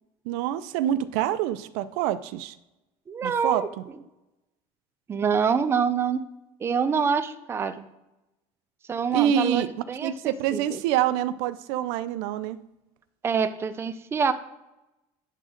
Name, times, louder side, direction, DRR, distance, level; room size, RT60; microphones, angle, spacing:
voice 1, 0.2-2.6 3.2-3.8 9.1-9.7 10.0-12.6, right 11 dB, 90° right, 14 dB, 0.5 m, -26 dB
voice 2, 3.1-3.7 5.1-6.2 6.6-7.9 8.9-10.8 13.2-14.3, right 6 dB, 20° right, 10 dB, 0.5 m, -26 dB
9.8 x 3.9 x 6.5 m, 0.95 s
cardioid pair, 150°, 12 cm